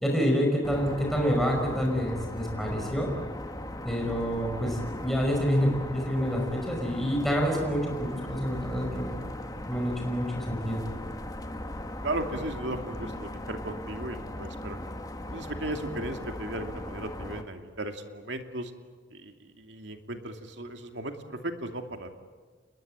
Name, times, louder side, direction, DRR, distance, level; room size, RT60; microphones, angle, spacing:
voice 1, 0.0-3.1 3.8-9.2 9.7-10.8, equal, ahead, -1 dB, 5.1 m, -27 dB
sound 1, 0.6-17.4, left 1 dB, 20° left, 1.8 m, -38 dB
voice 2, 12.0-14.8 15.3-18.7 19.1-22.1, right 1 dB, 70° right, 5 dB, 2.6 m, -36 dB
28.5 x 22.0 x 8.9 m, 1.5 s
head